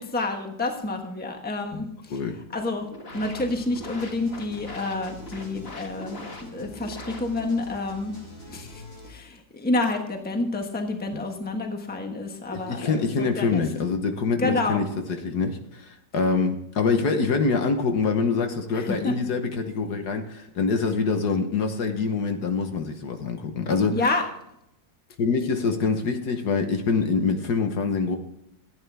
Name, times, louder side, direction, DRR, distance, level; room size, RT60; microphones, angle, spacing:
voice 1, 0.0-1.9 2.5-2.9 3.1-8.1 8.5-13.6 14.4-14.8 18.7-19.1 23.9-24.2, left 2 dB, 5° left, 3 dB, 1.2 m, -29 dB
sound 1, 2.7-7.7, left 2 dB, 35° left, 1.7 m, -42 dB
sound 2, 3.1-9.1, equal, 80° left, 5.5 m, -45 dB
voice 2, 12.5-14.9 15.2-24.1 25.2-28.2, left 4 dB, 65° left, 6 dB, 1.7 m, -25 dB
15.0 x 9.2 x 3.5 m, 0.81 s
omnidirectional pair, 1.9 m